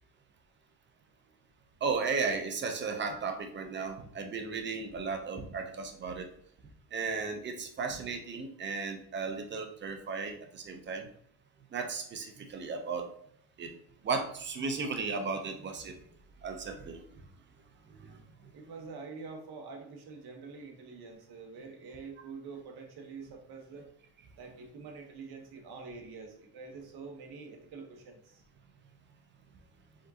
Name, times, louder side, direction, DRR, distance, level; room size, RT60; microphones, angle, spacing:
voice 1, 1.8-6.3 6.9-11.1 11.7-13.1 13.6-13.7 14.0-16.0 16.4-17.0 17.9-18.2, right 4 dB, 25° right, 5 dB, 0.6 m, -35 dB
voice 2, 18.5-23.9 24.4-28.4, right 4 dB, 50° right, 3 dB, 1.2 m, -46 dB
5.0 x 3.6 x 2.8 m, 0.68 s
cardioid pair, 140°, 48 cm